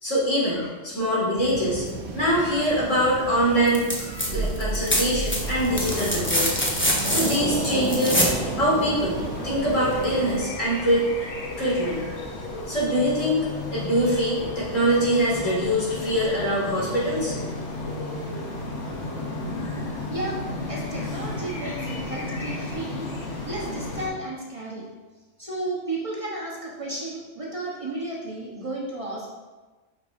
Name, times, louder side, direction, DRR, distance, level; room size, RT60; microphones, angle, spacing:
voice 1, 0.0-1.8 2.1-6.5 7.1-8.3 8.5-11.1 11.6-12.0 12.7-13.5 13.7-17.3, equal, 85° left, -6 dB, 2.7 m, -24 dB
sound 1, 1.4-10.4, right 3 dB, 80° right, 1.2 m, -32 dB
sound 2, 3.7-4.3 4.6-8.4 10.0-10.1, equal, 10° left, 0.8 m, -25 dB
sound 3, 5.4-24.1, left 2 dB, 65° left, 1.4 m, -34 dB
voice 2, 20.0-24.9 25.4-29.3, right 2 dB, 30° right, -5 dB, 1.1 m, -33 dB
8.5 x 5.7 x 2.6 m, 1.3 s
omnidirectional pair, 1.3 m